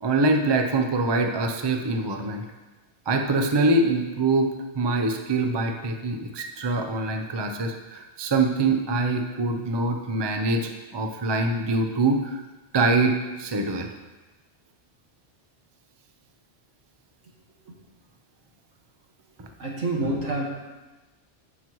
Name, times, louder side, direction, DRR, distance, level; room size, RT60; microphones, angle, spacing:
voice 1, 0.0-2.4 3.1-12.4 12.7-13.9, right 2 dB, 30° right, 4 dB, 0.6 m, -24 dB
voice 2, 19.6-20.5, right 2 dB, 80° right, -2 dB, 2.0 m, -27 dB
15.5 x 5.8 x 3.1 m, 1.2 s
omnidirectional pair, 1.2 m